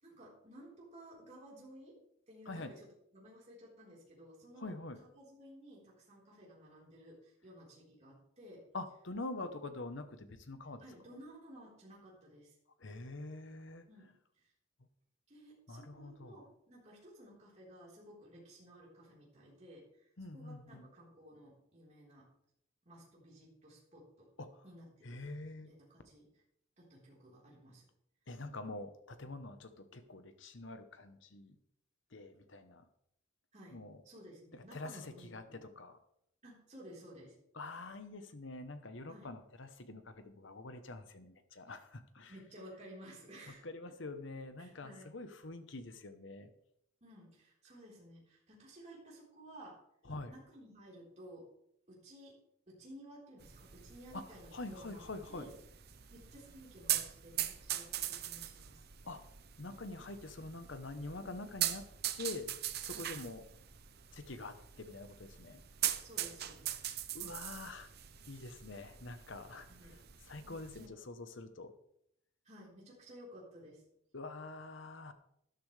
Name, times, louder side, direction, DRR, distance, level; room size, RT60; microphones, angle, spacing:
voice 1, 0.0-2.0 2.3-2.9 3.1-4.7 5.0-8.7 10.8-12.6 13.9-14.5 15.3-22.3 22.8-24.3 24.6-25.2 25.6-26.3 26.8-27.9 33.5-33.8 34.0-35.7 36.4-37.4 39.1-39.3 41.7-41.8 42.3-43.6 44.6-45.1 47.0-49.8 50.3-51.5 51.9-52.4 52.7-55.0 55.3-55.5 56.1-58.8 62.9-63.1 66.0-66.7 69.7-70.0 70.4-71.0 72.4-73.8, equal, 30° right, -5 dB, 4.1 m, -55 dB
voice 2, 4.6-5.0 8.7-10.8 12.8-13.9 15.7-16.4 20.2-20.9 24.4-24.6 25.0-25.7 28.3-31.6 32.1-32.9 33.7-34.0 34.5-36.0 37.5-42.3 43.6-46.5 50.0-50.3 54.1-54.2 54.5-55.5 59.0-59.3 59.6-61.9 62.2-62.5 62.8-63.4 64.1-65.6 67.1-67.9 68.3-69.7 70.3-71.7 74.1-75.1, left 2 dB, 60° left, 9 dB, 1.0 m, -46 dB
sound 1, 53.4-70.9, right 12 dB, 50° right, 0.7 m, -42 dB
13.0 x 12.0 x 3.3 m, 0.73 s
head